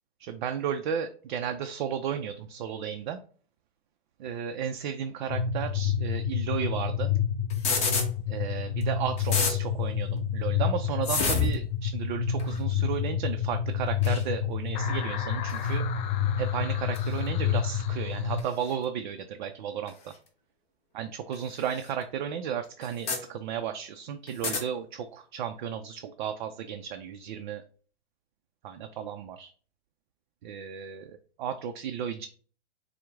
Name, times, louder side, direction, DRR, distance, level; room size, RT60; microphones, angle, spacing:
voice 1, 0.2-3.2 4.2-7.1 8.3-15.8 16.4-20.1 20.9-27.6 28.6-29.5 30.4-32.3, right 8 dB, 50° right, 6 dB, 0.4 m, -34 dB
sound 1, 5.3-18.4, left 8 dB, 50° left, 0.5 m, -29 dB
sound 2, 7.5-8.1 8.8-8.9 9.2-9.5 11.0-11.6 12.4-12.6 14.0-14.2 15.5-15.7 16.9-17.1 18.4-18.5 19.9-20.0 21.3-21.4 21.8-21.9 22.8-23.2 24.3-24.6, left 4 dB, 20° left, 0.8 m, -28 dB
4.4 x 2.1 x 3.5 m, 0.43 s
hypercardioid pair, 130°, 31 cm